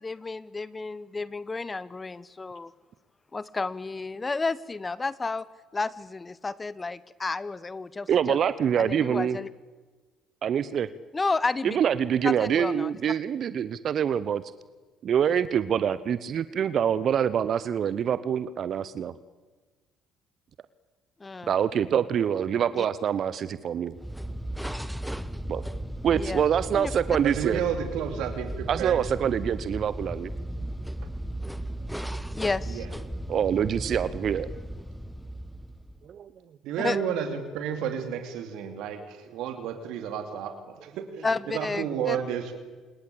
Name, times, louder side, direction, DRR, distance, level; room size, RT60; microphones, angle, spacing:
voice 1, 0.0-2.7 3.3-5.5 5.7-8.4 8.8-9.5 11.1-11.8 12.2-12.9 21.2-21.5 22.8-22.9 26.1-26.4 26.7-26.9 32.3-32.8 36.8-37.0 41.2-42.2, left 3 dB, 25° left, 19 dB, 1.0 m, -31 dB
voice 2, 8.1-9.4 10.4-10.9 11.6-14.4 15.0-19.1 21.5-23.9 25.5-25.6 26.0-27.6 28.7-30.3 33.3-34.5 36.0-36.3 38.7-38.8, right 8 dB, 55° right, 16 dB, 0.9 m, -25 dB
sound 1, 23.9-36.1, right 1 dB, ahead, 1.4 m, -36 dB
voice 3, 27.2-29.0 32.7-32.9 36.6-42.6, right 8 dB, 70° right, 7 dB, 2.9 m, -32 dB
27.0 x 21.5 x 8.5 m, 1.3 s
hypercardioid pair, 55°, 0 cm